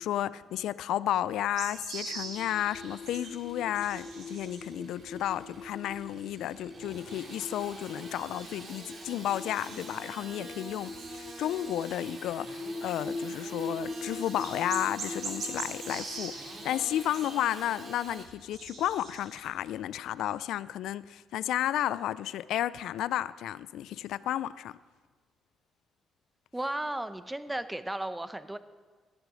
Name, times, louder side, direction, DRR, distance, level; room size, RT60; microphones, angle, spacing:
voice 1, 0.0-24.8, left 12 dB, 85° left, 0.3 m, -32 dB
sound 1, 1.5-4.7 5.0-6.6 6.8-7.0 7.3-8.8 9.2-10.2 10.7-11.8 12.2-12.6 13.6-13.7 13.8-17.4 17.8-19.8, right 3 dB, 75° right, 3.2 m, -43 dB
sound 2, 2.1-18.4, left 2 dB, 40° left, 1.7 m, -42 dB
Engine starting / Sawing, 2.6-18.3, right 3 dB, 55° right, 2.2 m, -47 dB
voice 2, 26.5-28.6, right 1 dB, 10° right, 0.7 m, -34 dB
14.5 x 8.4 x 6.3 m
cardioid pair, 90°, 0 cm